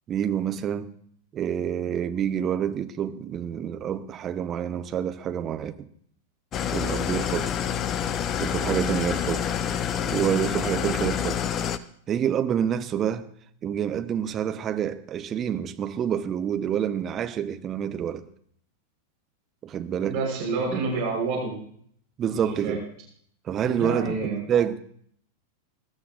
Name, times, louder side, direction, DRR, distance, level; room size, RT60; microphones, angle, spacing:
voice 1, 0.1-0.9 1.3-5.9 6.7-7.6 8.4-9.5 10.1-11.4 12.1-13.3 13.6-18.3 19.6-20.2 20.7-20.8 22.2-22.8 23.4-24.8, right 9 dB, 30° right, 0.9 m, -27 dB
Engine starting / Idling, 6.5-11.8, left 9 dB, 30° left, 0.7 m, -27 dB
voice 2, 20.0-21.6 22.2-22.8 23.7-24.4, right 4 dB, 45° right, 6.3 m, -28 dB
22.0 x 13.5 x 2.5 m
figure-of-eight pair, 90°, 0 cm